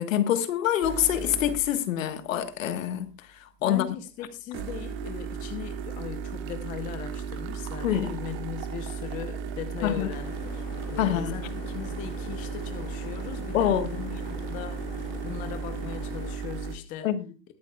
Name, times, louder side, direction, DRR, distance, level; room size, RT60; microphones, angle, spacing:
voice 1, 0.0-3.8 7.8-8.1 9.8-10.1 11.0-11.4 13.5-13.9 17.0-17.3, left 10 dB, 50° left, 1.5 m, -26 dB
sound 1, 0.8-1.8 4.5-16.8, right 6 dB, 25° right, 1.1 m, -35 dB
voice 2, 3.7-14.9 15.2-17.1, left 10 dB, 15° left, 0.7 m, -39 dB
sound 2, 10.1-16.4, left 9 dB, 35° left, 1.3 m, -43 dB
21.5 x 7.4 x 2.4 m
hypercardioid pair, 140°, 49 cm